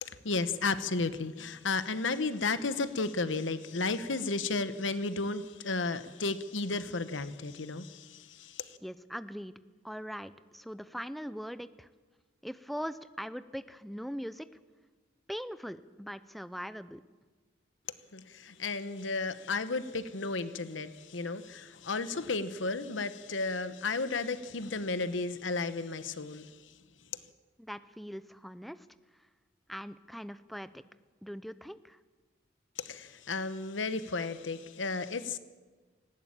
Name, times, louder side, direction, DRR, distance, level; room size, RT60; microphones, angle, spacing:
voice 1, 0.0-8.8 18.1-26.7 32.8-35.4, left 3 dB, 80° left, 12 dB, 1.1 m, -33 dB
voice 2, 8.8-9.5 9.8-11.9 12.4-14.5 15.3-17.0 27.6-28.9 29.1-29.3 29.7-30.8 31.2-32.0, equal, ahead, 13 dB, 0.6 m, -41 dB
19.0 x 17.0 x 8.9 m, 1.3 s
head